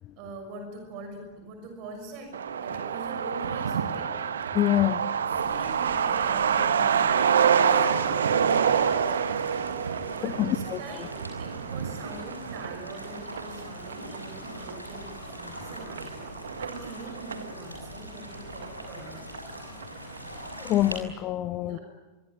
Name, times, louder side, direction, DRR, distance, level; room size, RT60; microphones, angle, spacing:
voice 1, 0.2-4.1 5.3-8.5 10.1-19.2 21.6-21.8, right 3 dB, 45° right, 6.2 m, -43 dB
Truck, 2.3-17.5 17.8-17.9 18.2-19.1 19.3-19.4 19.8-20.2, right 7 dB, 65° right, 1.4 m, -27 dB
voice 2, 4.5-5.0 10.2-10.8 20.6-21.8, left 14 dB, 35° left, 0.8 m, -25 dB
sound 1, 5.3-21.0, equal, 85° right, 5.9 m, -42 dB
24.0 x 24.0 x 9.6 m
figure-of-eight pair, 90°, 0 cm